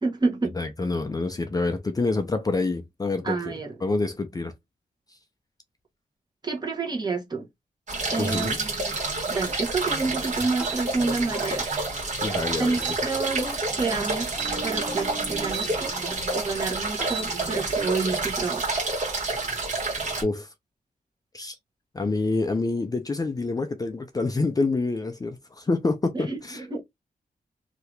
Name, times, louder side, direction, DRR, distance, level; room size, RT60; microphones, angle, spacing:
voice 1, 0.0-0.6 3.2-3.7 6.4-7.5 8.1-9.0 9.3-11.7 12.6-14.4 14.6-18.7 26.1-26.8, right 4 dB, 30° right, 1.0 m, -29 dB
voice 2, 0.6-3.5 3.8-4.5 5.1-5.2 8.2-8.6 12.2-12.8 13.1-13.2 20.2-20.5 21.3-21.6 21.9-26.7, left 3 dB, 25° left, 0.5 m, -27 dB
sound 1, 7.9-20.2, right 3 dB, 55° right, 1.5 m, -29 dB
sound 2, 8.3-8.5 10.6-10.8 12.8-13.0 14.3-15.7 16.9-17.3, right 5 dB, 5° right, 1.0 m, -35 dB
2.8 x 2.5 x 3.2 m
wide cardioid pair, 120°, 15 cm